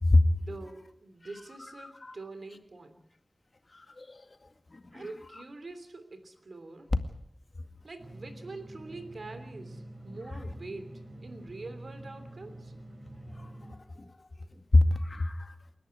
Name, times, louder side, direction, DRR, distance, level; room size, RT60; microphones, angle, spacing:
voice 1, 0.4-3.0 4.9-6.9 7.8-12.7, right 3 dB, 80° right, 9 dB, 3.2 m, -45 dB
voice 2, 1.8-2.2 3.7-4.2 4.7-5.0 13.4-14.1 14.7-15.5, left 2 dB, 55° left, 7 dB, 2.1 m, -26 dB
sound 1, 8.0-13.8, right 1 dB, 55° right, 4.9 m, -47 dB
29.0 x 11.0 x 9.7 m, 0.75 s
wide cardioid pair, 70°, 0 cm